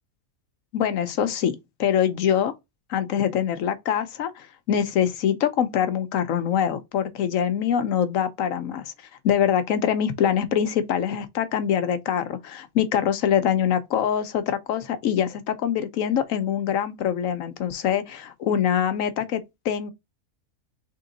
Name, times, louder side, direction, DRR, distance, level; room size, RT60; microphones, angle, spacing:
voice 1, 0.7-1.5 1.8-2.5 2.9-8.9 9.2-19.9, left 9 dB, 70° left, 1.0 m, -24 dB
3.7 x 3.5 x 3.9 m
omnidirectional pair, 1.5 m